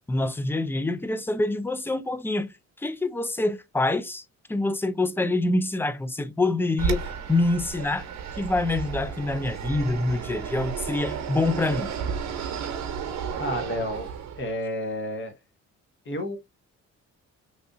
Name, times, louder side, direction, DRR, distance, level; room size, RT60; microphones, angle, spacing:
voice 1, 0.1-8.1 8.4-11.9, left 2 dB, 10° left, 0.4 m, -26 dB
Fixed-wing aircraft airplane, 6.8-14.6, right 7 dB, 65° right, 0.8 m, -32 dB
voice 2, 13.3-14.1 14.4-15.3 16.0-16.4, left 1 dB, 40° left, 1.0 m, -31 dB
3.2 x 2.7 x 2.6 m
cardioid pair, 90°, 30 cm